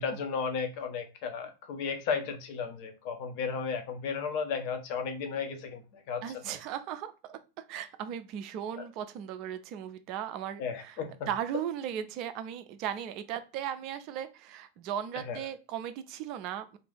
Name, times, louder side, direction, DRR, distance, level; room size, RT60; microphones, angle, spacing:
voice 1, 0.0-6.2 8.8-8.9 10.6-11.3 15.3-15.4, left 6 dB, 45° left, 0.6 m, -34 dB
voice 2, 6.2-11.0 11.3-16.8, right 9 dB, 40° right, 0.4 m, -37 dB
2.6 x 2.4 x 3.6 m
figure-of-eight pair, 90°, 0 cm